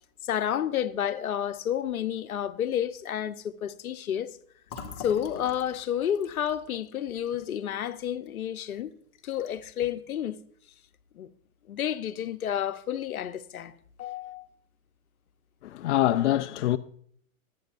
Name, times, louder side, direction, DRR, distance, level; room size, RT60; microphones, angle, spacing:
voice 1, 0.2-4.3 5.0-8.9 9.2-10.4 11.2-11.3 11.7-13.7 14.0-14.5, left 10 dB, 80° left, 1.0 m, -30 dB
Fill (with liquid), 4.7-8.3 8.7-8.8 9.1-9.7, left 6 dB, 35° left, 1.9 m, -45 dB
voice 2, 15.6-16.8, left 13 dB, 55° left, 0.6 m, -24 dB
24.5 x 9.4 x 2.6 m
hypercardioid pair, 145°, 42 cm